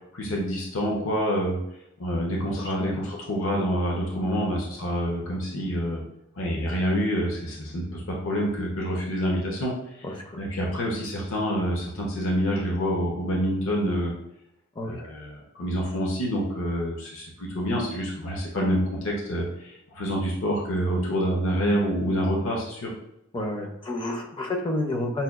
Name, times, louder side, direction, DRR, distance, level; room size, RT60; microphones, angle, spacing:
voice 1, 0.1-1.6 2.0-6.0 6.4-9.7 10.4-14.1 14.8-22.9, equal, 70° left, -2 dB, 0.7 m, -27 dB
voice 2, 2.6-2.9 10.0-10.4 14.8-15.0 23.3-25.2, left 1 dB, 25° left, 1 dB, 0.4 m, -30 dB
5.4 x 2.2 x 2.3 m, 0.83 s
head